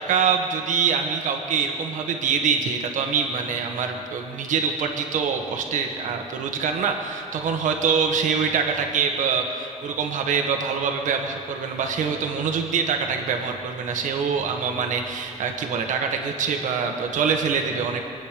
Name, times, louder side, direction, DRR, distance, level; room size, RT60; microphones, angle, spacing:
voice 1, 0.0-18.0, right 6 dB, 85° right, 3 dB, 1.6 m, -24 dB
26.0 x 9.4 x 5.2 m, 2.5 s
cardioid pair, 125°, 13 cm